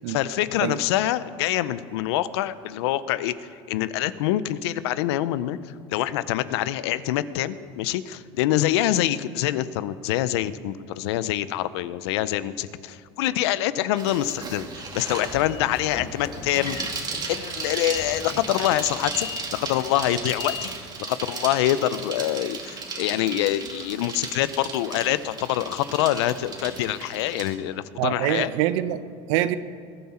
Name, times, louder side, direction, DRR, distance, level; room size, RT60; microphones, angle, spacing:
voice 1, 0.1-16.8 17.3-20.7 21.0-28.5, left 13 dB, 85° left, 16 dB, 0.6 m, -25 dB
Bicycle, 14.0-27.5, right 4 dB, 30° right, 2.4 m, -35 dB
Train / Sliding door, 14.6-21.0, left 6 dB, 35° left, 1.4 m, -40 dB
voice 2, 28.0-29.6, right 13 dB, 75° right, 13 dB, 0.8 m, -25 dB
20.5 x 9.6 x 4.3 m, 2.2 s
supercardioid pair, 110°, 14 cm